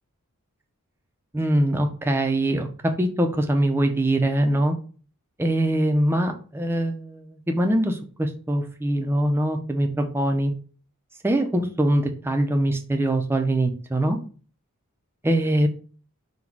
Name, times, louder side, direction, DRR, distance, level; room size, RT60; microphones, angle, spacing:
voice 1, 1.3-4.8 5.4-10.5 11.2-14.2 15.2-15.7, right 1 dB, 10° right, 4 dB, 0.4 m, -23 dB
4.0 x 2.1 x 4.5 m, 0.40 s
head